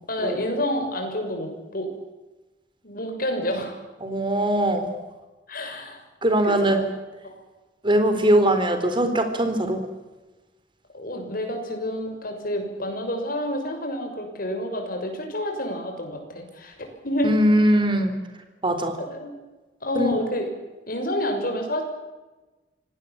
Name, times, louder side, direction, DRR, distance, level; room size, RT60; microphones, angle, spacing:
voice 1, 0.1-1.9 2.8-3.8 5.5-6.0 6.4-6.9 7.2-7.4 10.9-16.7 17.0-17.5 19.0-19.3 19.8-20.5 20.9-21.8, equal, 55° left, 4 dB, 6.5 m, -29 dB
voice 2, 4.0-4.9 6.2-6.8 7.8-9.8 17.2-18.1 18.6-19.0 20.0-20.1, right 1 dB, 30° right, 7 dB, 4.0 m, -21 dB
25.5 x 18.5 x 8.7 m, 1.1 s
head